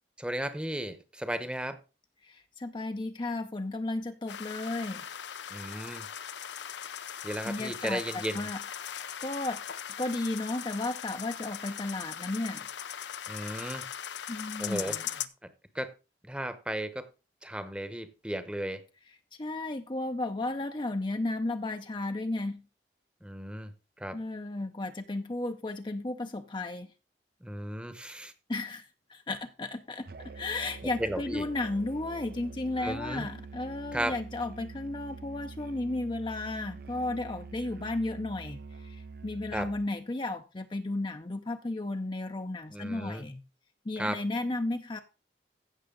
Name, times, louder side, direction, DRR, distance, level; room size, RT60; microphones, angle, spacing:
voice 1, 0.2-1.8 5.5-6.1 7.2-8.5 13.3-13.9 14.6-14.9 15.4-15.9 16.2-17.1 17.4-18.8 23.2-23.7 24.0-24.2 27.4-28.3 31.0-31.5 32.8-33.3 33.9-34.1 39.5-39.7 42.7-43.2 44.0-44.2, right 1 dB, 5° right, 0.9 m, -35 dB
voice 2, 2.2-5.1 7.4-8.6 9.2-9.6 10.0-12.7 14.3-15.0 19.4-22.6 24.1-26.9 28.5-43.4 43.9-45.0, left 2 dB, 25° left, 0.6 m, -34 dB
sound 1, 4.3-15.3, left 9 dB, 85° left, 0.6 m, -39 dB
Musical instrument, 30.1-39.9, right 4 dB, 55° right, 0.6 m, -45 dB
15.5 x 6.3 x 3.8 m
head